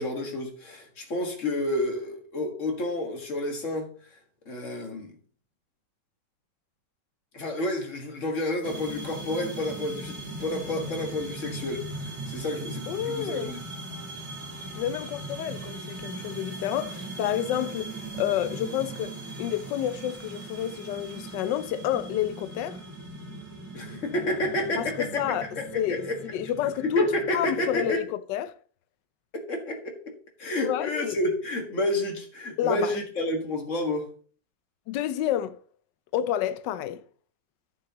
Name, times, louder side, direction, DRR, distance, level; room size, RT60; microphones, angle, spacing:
voice 1, 0.0-3.9 4.5-5.1 7.3-11.9 12.3-13.6 23.7-26.2 26.8-28.0 29.3-30.0 30.4-34.1, left 1 dB, 45° left, 2.0 m, -30 dB
sound 1, 8.6-27.9, right 2 dB, 55° right, 2.2 m, -39 dB
voice 2, 12.9-13.5 14.7-22.8 24.8-25.5 25.7-26.1 26.3-27.1 27.3-28.6 30.6-31.2 32.6-32.9 34.9-35.6 36.1-37.0, left 11 dB, 80° left, 1.2 m, -29 dB
12.5 x 6.6 x 2.9 m
omnidirectional pair, 1.9 m